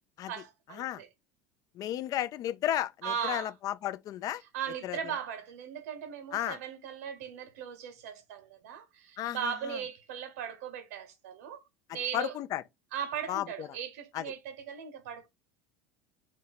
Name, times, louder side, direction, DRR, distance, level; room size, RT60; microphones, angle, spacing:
voice 1, 0.3-1.1 2.0-2.3 3.0-3.5 4.5-11.6 11.9-12.4 12.9-15.3, right 8 dB, 85° right, 0.8 m, -38 dB
voice 2, 1.8-4.4 4.8-5.0 6.3-6.6 9.2-9.8 12.1-12.6 13.3-13.7 14.1-14.2, left 12 dB, 50° left, 0.4 m, -33 dB
4.2 x 2.1 x 3.9 m
supercardioid pair, 100°, 8 cm